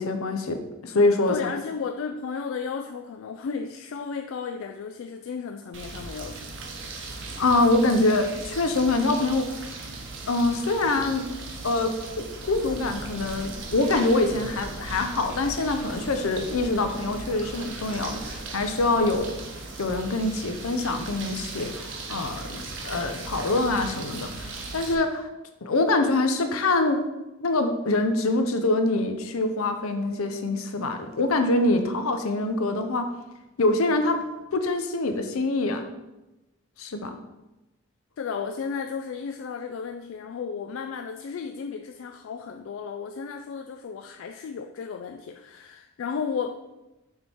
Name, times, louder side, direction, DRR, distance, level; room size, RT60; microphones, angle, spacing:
voice 1, 0.0-1.5 7.4-9.6 10.3-11.3 11.6-19.3 19.8-25.3 25.6-27.0 27.4-33.1 33.6-34.2 34.5-35.9 36.8-37.2, left 2 dB, 85° left, 7 dB, 0.7 m, -25 dB
voice 2, 1.3-6.5 38.2-46.7, left 6 dB, 70° left, 6 dB, 0.3 m, -34 dB
sound 1, 5.7-24.9, right 3 dB, 60° right, 0.8 m, -38 dB
sound 2, 12.4-19.2, equal, 50° left, 1.7 m, -44 dB
6.5 x 3.5 x 4.5 m, 1.0 s
head